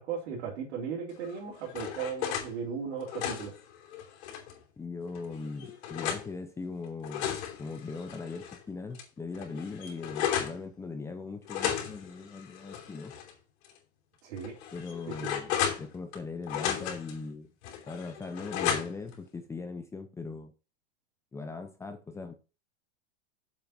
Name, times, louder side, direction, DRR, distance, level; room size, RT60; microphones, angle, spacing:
voice 1, 0.0-3.5 14.2-14.5, right 6 dB, 65° right, -5 dB, 3.5 m, -36 dB
sound 1, 1.2-2.5 2.9-4.6 5.1-6.3 6.8-8.6 8.9-9.0 9.3-10.6 11.5-13.3 13.6-13.8 14.4-16.2 16.5-17.2 17.6-19.1, left 9 dB, 65° left, 3.2 m, -34 dB
voice 2, 4.8-13.1 14.7-17.5 17.9-20.5 21.3-22.3, left 4 dB, 10° left, 7 dB, 0.7 m, -40 dB
7.3 x 5.7 x 5.9 m, 0.31 s
supercardioid pair, 155°, 35 cm